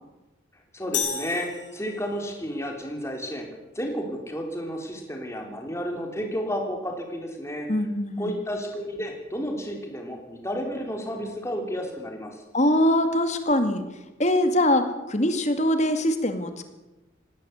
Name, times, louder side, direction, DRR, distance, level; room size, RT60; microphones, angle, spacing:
voice 1, 0.7-3.5 3.8-7.7 8.2-12.4, equal, 15° left, 2 dB, 3.8 m, -32 dB
sound 1, 0.9-2.3, left 7 dB, 70° left, 5.6 m, -32 dB
voice 2, 7.7-8.3 12.5-13.9 14.2-16.6, left 1 dB, 35° left, 8 dB, 2.2 m, -23 dB
19.5 x 16.0 x 8.3 m, 1.0 s
head